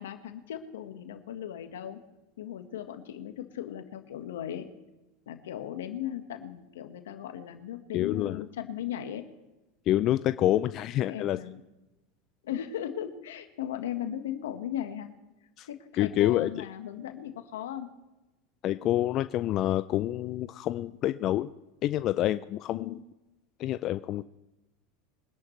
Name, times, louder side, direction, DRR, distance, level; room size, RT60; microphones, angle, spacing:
voice 1, 0.0-2.0 2.4-4.7 5.3-9.3 10.7-11.6 12.4-15.1 15.7-17.9 22.7-23.0, left 10 dB, 85° left, 7 dB, 1.5 m, -37 dB
voice 2, 7.9-8.4 9.9-11.4 15.6-15.7 16.0-16.6 18.6-21.5 21.8-23.0 23.6-24.2, left 13 dB, 45° left, 12 dB, 0.4 m, -27 dB
23.0 x 11.0 x 3.3 m, 1.0 s
supercardioid pair, 110°, 0 cm